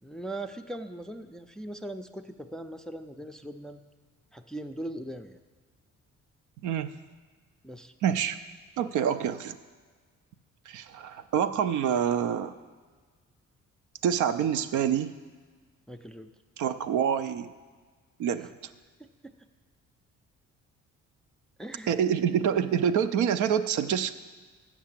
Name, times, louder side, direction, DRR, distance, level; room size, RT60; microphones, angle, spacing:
voice 1, 0.0-3.8 4.3-5.4 7.6-7.9 15.9-16.3 19.0-19.3 21.6-21.9, right 1 dB, ahead, 8 dB, 0.4 m, -40 dB
voice 2, 8.0-8.4 8.8-9.5 10.7-12.5 14.0-15.1 16.6-17.5 18.2-18.5 21.9-24.1, right 8 dB, 75° right, 10 dB, 0.5 m, -26 dB
7.5 x 6.0 x 7.3 m, 1.5 s
cardioid pair, 90°, 30 cm